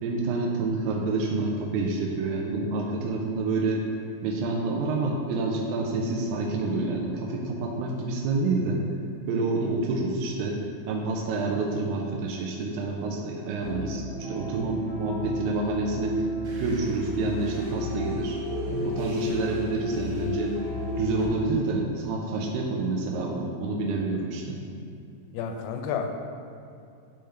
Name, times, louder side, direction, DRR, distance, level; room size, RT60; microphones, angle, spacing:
voice 1, 0.0-3.8 4.2-8.8 9.3-10.6 10.9-16.3 16.6-18.4 18.8-20.6 21.0-24.6, right 3 dB, 85° right, -1 dB, 2.1 m, -28 dB
sound 1, 13.6-21.3, left 1 dB, 65° right, 1.5 m, -32 dB
voice 2, 25.3-26.3, left 6 dB, 85° left, 5 dB, 2.4 m, -31 dB
10.0 x 3.5 x 3.3 m, 2.5 s
omnidirectional pair, 4.6 m